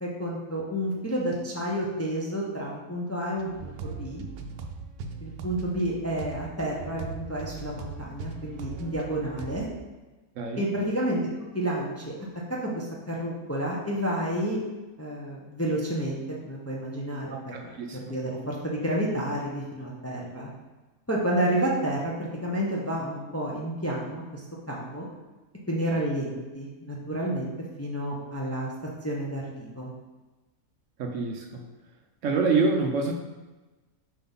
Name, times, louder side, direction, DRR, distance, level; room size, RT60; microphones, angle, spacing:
voice 1, 0.0-4.2 5.2-9.7 10.6-11.2 11.5-12.1 12.6-14.6 15.0-20.5 21.1-25.1 25.7-27.5 27.8-28.7 29.0-29.9, right 1 dB, 15° left, -3 dB, 0.6 m, -30 dB
sound 1, 3.4-9.8, right 4 dB, 85° right, 1.1 m, -39 dB
voice 2, 10.4-10.7 17.3-18.0 31.0-31.6 32.2-33.1, right 4 dB, 65° right, 3 dB, 0.9 m, -26 dB
4.6 x 3.8 x 5.4 m, 1.2 s
omnidirectional pair, 1.5 m